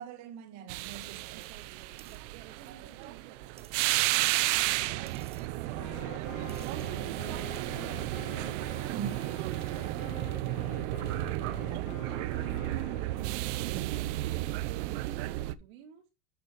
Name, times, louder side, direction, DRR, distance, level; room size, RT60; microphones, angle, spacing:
voice 1, 0.0-1.5 2.7-2.9 8.9-9.3 11.6-12.1 13.5-14.0, right 8 dB, 40° right, 1.7 m, -42 dB
sound 1, 0.7-15.5, right 17 dB, 60° right, 0.8 m, -33 dB
voice 2, 1.3-6.0 6.5-8.0 8.4-10.8 11.4-12.2 12.9-16.1, right 10 dB, 75° right, 2.6 m, -55 dB
sound 2, 1.4-1.6 2.0-2.2 3.0-3.1 3.6-3.8 5.1-5.5 6.5-6.9 7.5-7.6, right 9 dB, 15° right, 0.5 m, -55 dB
Wind instrument woodwind instrument, 5.7-13.7, left 15 dB, 35° left, 0.5 m, -48 dB
8.6 x 7.0 x 4.4 m
supercardioid pair, 170°, 41 cm